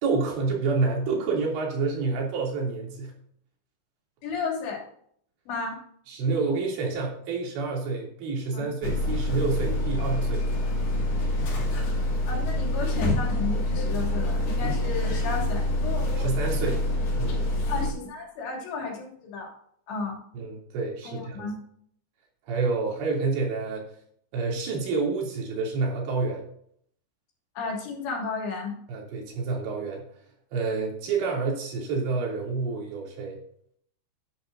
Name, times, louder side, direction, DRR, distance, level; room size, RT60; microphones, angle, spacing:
voice 1, 0.0-3.1 6.1-10.5 16.2-16.9 17.2-17.4 20.3-21.5 22.5-23.9 24.3-26.5 28.9-30.0 30.5-33.4, right 4 dB, 90° right, -1 dB, 5.2 m, -28 dB
voice 2, 4.2-4.8 5.5-5.8 8.5-8.7 12.3-15.7 17.7-19.5 19.9-20.2 21.1-21.5 27.6-28.8, left 4 dB, 85° left, -1 dB, 5.1 m, -33 dB
sound 1, 8.8-17.9, left 1 dB, 70° left, 4.7 m, -26 dB
11.0 x 10.5 x 2.7 m, 0.65 s
omnidirectional pair, 4.9 m